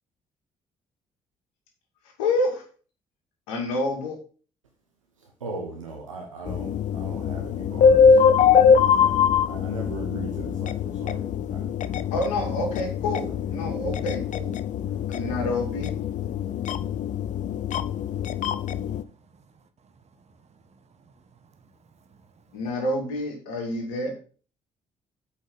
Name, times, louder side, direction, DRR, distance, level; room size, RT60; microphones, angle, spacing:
voice 1, 2.2-2.6 3.5-4.2 12.1-14.6 15.1-15.9 22.5-24.2, left 2 dB, 75° left, 2.4 m, -28 dB
voice 2, 5.4-9.2 9.5-12.1 13.2-13.3, right 3 dB, 90° right, 1.1 m, -39 dB
sound 1, 6.5-19.0, left 6 dB, 50° left, 0.6 m, -23 dB
voice 3, 19.0-22.2 22.5-22.6, right 4 dB, 45° right, 1.6 m, -59 dB
8.5 x 5.3 x 5.3 m
figure-of-eight pair, 45°, 16 cm